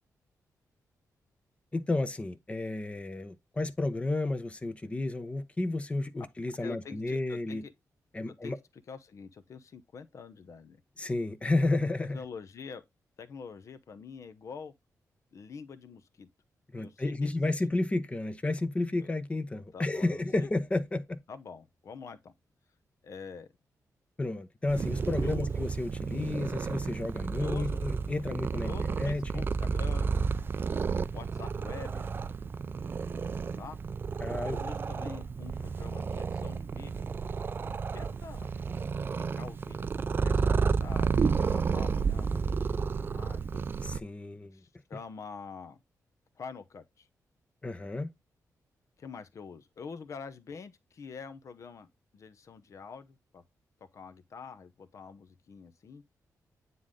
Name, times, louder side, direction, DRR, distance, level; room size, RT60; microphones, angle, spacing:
voice 1, 1.7-7.6 8.1-8.6 11.0-12.2 16.7-21.2 24.2-28.7 29.0-29.4 34.2-34.6 43.8-44.6 47.6-48.1, left 2 dB, 20° left, 0.8 m, -32 dB
voice 2, 6.6-7.7 8.3-8.5 8.9-10.8 12.1-12.8 13.2-14.7 15.3-16.3 16.8-17.6 19.0-19.1 19.7-20.5 21.3-22.3 23.0-23.5 25.2-25.5 27.3-27.8 28.6-30.1 31.1-32.1 33.6-33.8 34.4-37.1 37.9-38.5 39.1-43.6 44.5-45.8 46.4-47.1 49.0-51.9 52.1-53.4 53.9-56.0, left 5 dB, 55° left, 0.9 m, -46 dB
Purr, 24.7-44.0, right 5 dB, 35° right, 0.3 m, -31 dB
9.4 x 3.8 x 3.8 m
wide cardioid pair, 130°, 6 cm